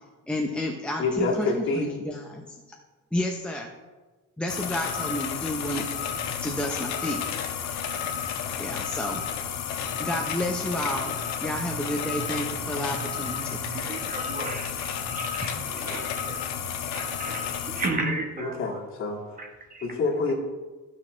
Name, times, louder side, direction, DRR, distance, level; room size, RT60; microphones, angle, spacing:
voice 1, 0.3-2.8 3.1-3.7 4.4-5.9 6.4-7.2 8.6-9.2 10.0-13.6, left 1 dB, 5° left, 1 dB, 0.7 m, -31 dB
voice 2, 1.0-1.9 18.4-19.4 19.8-20.3, left 3 dB, 45° left, -3 dB, 2.2 m, -27 dB
sound 1, 4.5-17.9, left 7 dB, 70° left, 1.2 m, -32 dB
voice 3, 13.4-16.4 16.9-18.8 19.4-19.9, right 2 dB, 30° right, 2 dB, 1.1 m, -34 dB
14.0 x 6.4 x 3.2 m, 1.2 s
cardioid pair, 145°, 30 cm